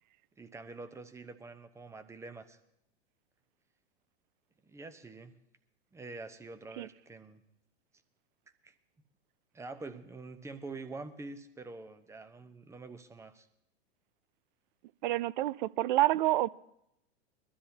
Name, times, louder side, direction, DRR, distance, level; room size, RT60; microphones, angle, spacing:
voice 1, 0.4-2.6 4.6-5.4 5.9-7.4 8.6-8.7 9.5-13.5, right 3 dB, 10° right, 0.8 m, -46 dB
voice 2, 15.0-16.5, right 16 dB, 45° right, 0.4 m, -28 dB
22.5 x 12.5 x 2.8 m
figure-of-eight pair, 100°, 33 cm